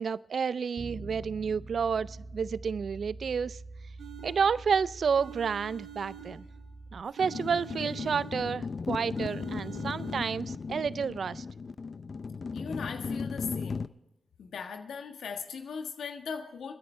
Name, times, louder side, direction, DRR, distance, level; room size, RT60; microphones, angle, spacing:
voice 1, 0.0-3.6 4.2-6.4 6.9-11.4, right 6 dB, 65° right, 19 dB, 0.4 m, -30 dB
Bass guitar, 0.8-7.0, right 2 dB, 45° right, 2.3 m, -45 dB
sound 1, 4.0-4.8 5.2-6.8 7.2-8.7 9.2-10.6, right 10 dB, 85° right, 2.2 m, -47 dB
sound 2, 7.2-13.9, left 4 dB, 55° left, 0.6 m, -36 dB
voice 2, 12.5-13.8 14.4-16.7, left 6 dB, 80° left, 4 dB, 1.5 m, -38 dB
29.5 x 10.5 x 3.3 m, 0.81 s
cardioid pair, 50°, 0 cm